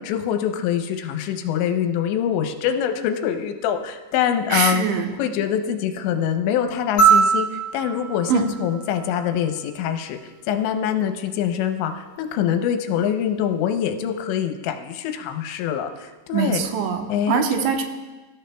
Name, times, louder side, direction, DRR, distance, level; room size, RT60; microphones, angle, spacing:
voice 1, 0.1-16.7 17.1-17.7, left 9 dB, 80° left, 6 dB, 3.0 m, -24 dB
voice 2, 4.5-5.1 8.3-8.5 16.3-17.9, right 7 dB, 85° right, 4 dB, 3.3 m, -23 dB
sound 1, 7.0-9.5 11.2-11.3, right 6 dB, 45° left, 4.2 m, -21 dB
23.5 x 13.0 x 2.3 m, 1.2 s
omnidirectional pair, 5.2 m